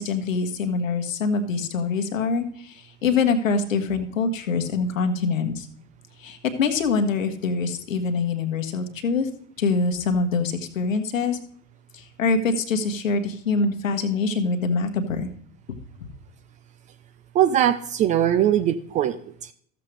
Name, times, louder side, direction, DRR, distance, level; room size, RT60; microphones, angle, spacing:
voice 1, 0.0-5.7 6.2-9.3 9.6-11.4 11.9-15.3 16.0-16.1, left 4 dB, 70° left, 6 dB, 1.5 m, -24 dB
voice 2, 17.3-19.5, right 10 dB, 20° right, 10 dB, 0.3 m, -21 dB
14.0 x 7.6 x 3.3 m, 0.62 s
figure-of-eight pair, 80°, 40 cm